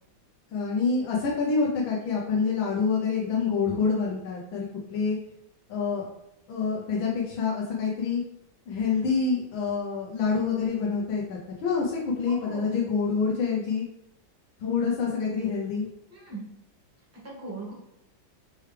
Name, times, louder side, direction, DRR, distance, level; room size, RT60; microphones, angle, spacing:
voice 1, 0.5-5.2 5.7-6.0 6.5-8.2 8.7-13.8 14.6-15.9, left 5 dB, 85° left, -4 dB, 1.5 m, -27 dB
voice 2, 12.2-12.7 16.1-16.5 17.2-17.7, right 3 dB, 10° right, -5 dB, 1.0 m, -39 dB
4.6 x 3.2 x 3.2 m, 0.81 s
omnidirectional pair, 2.1 m